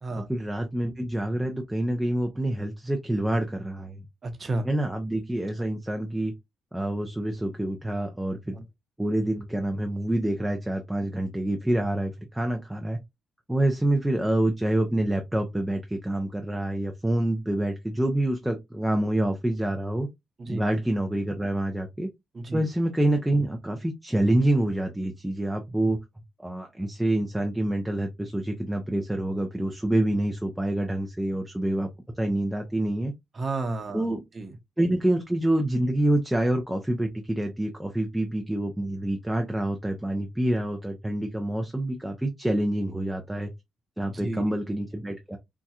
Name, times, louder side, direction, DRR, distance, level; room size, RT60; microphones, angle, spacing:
voice 1, 0.2-4.0 4.6-6.3 6.7-8.6 9.0-13.0 13.5-20.1 20.5-22.1 22.5-26.0 26.4-31.9 32.2-33.1 33.9-34.2 34.8-43.5 44.0-45.4, right 1 dB, 5° right, 0.5 m, -27 dB
voice 2, 4.2-4.7 8.5-8.6 20.4-20.6 22.3-22.7 33.3-34.5 44.0-44.5, right 2 dB, 30° right, 0.8 m, -32 dB
4.1 x 2.3 x 2.4 m
cardioid pair, 120°, 0 cm